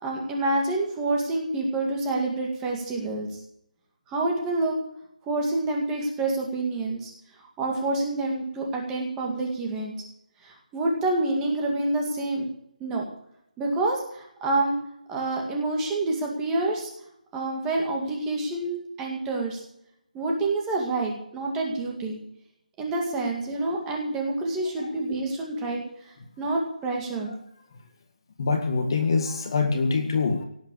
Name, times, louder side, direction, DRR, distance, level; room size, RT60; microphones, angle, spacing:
voice 1, 0.0-3.3 4.1-4.8 5.2-7.1 7.6-9.9 10.4-12.5 12.8-13.1 13.6-14.8 15.1-16.9 17.3-19.6 20.1-22.2 22.8-25.8 26.4-27.3, right 2 dB, 10° right, 0 dB, 2.1 m, -27 dB
voice 2, 28.4-30.4, left 4 dB, 30° left, 6 dB, 1.9 m, -25 dB
18.0 x 7.8 x 8.5 m, 0.74 s
figure-of-eight pair, 170°, 5 cm